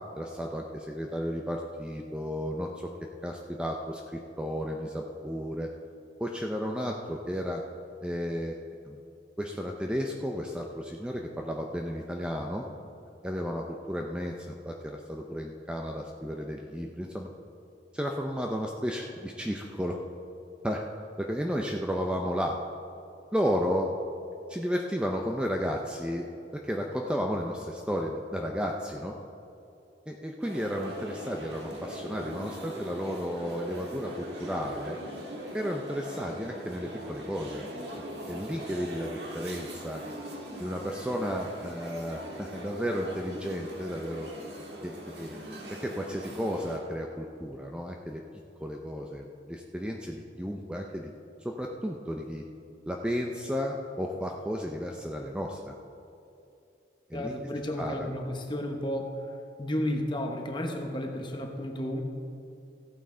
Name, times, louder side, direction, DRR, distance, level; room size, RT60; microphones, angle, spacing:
voice 1, 0.1-2.9 3.2-5.7 6.2-7.6 8.0-8.6 8.8-9.0 9.4-12.7 13.2-17.3 17.9-20.0 20.6-20.9 21.2-22.6 23.3-23.9 24.5-29.1 30.1-35.0 35.5-37.7 38.0-40.0 40.6-44.3 44.8-45.4 45.8-48.2 48.6-51.1 51.4-52.4 52.9-55.7 57.1-57.3 57.8-58.1, equal, 5° right, 1 dB, 0.5 m, -33 dB
sound 1, 30.4-46.8, right 1 dB, 65° right, 1.7 m, -41 dB
voice 2, 57.1-59.1 59.6-62.0, left 1 dB, 25° left, 3 dB, 1.0 m, -32 dB
15.0 x 8.8 x 3.8 m, 2.6 s
head